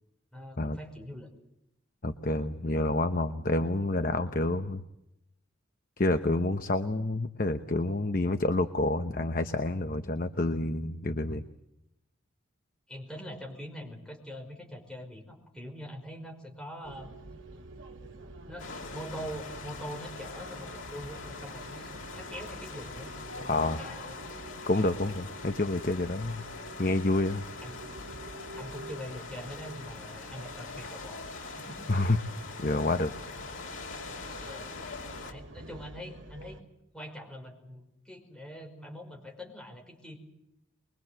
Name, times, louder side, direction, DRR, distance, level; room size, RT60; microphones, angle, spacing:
voice 1, 0.3-1.3 12.9-17.1 18.5-24.3 27.6-27.9 28.6-32.1 34.4-34.7 35.3-36.6 36.9-40.2, equal, 5° left, 1 dB, 5.3 m, -43 dB
voice 2, 2.0-4.8 6.0-11.4 23.4-23.8 24.7-26.4 26.8-27.4 31.9-32.2 32.6-33.1, left 2 dB, 45° left, 8 dB, 1.0 m, -28 dB
sound 1, 16.8-36.6, right 1 dB, 75° right, 2.3 m, -48 dB
sound 2, 18.6-35.3, left 4 dB, 85° left, 3.0 m, -43 dB
23.5 x 23.0 x 7.6 m, 0.84 s
head